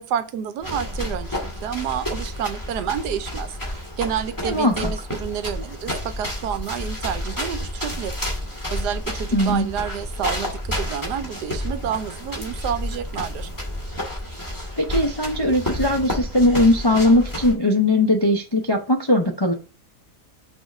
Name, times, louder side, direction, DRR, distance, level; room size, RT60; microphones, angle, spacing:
voice 1, 0.0-8.1 8.7-13.5, right 9 dB, 75° right, 1.2 m, -29 dB
sound 1, 0.6-17.5, left 1 dB, 10° left, 1.7 m, -30 dB
voice 2, 4.4-4.9 9.3-9.7 14.8-19.5, left 1 dB, 35° left, 0.4 m, -19 dB
6.2 x 3.7 x 5.2 m
omnidirectional pair, 1.8 m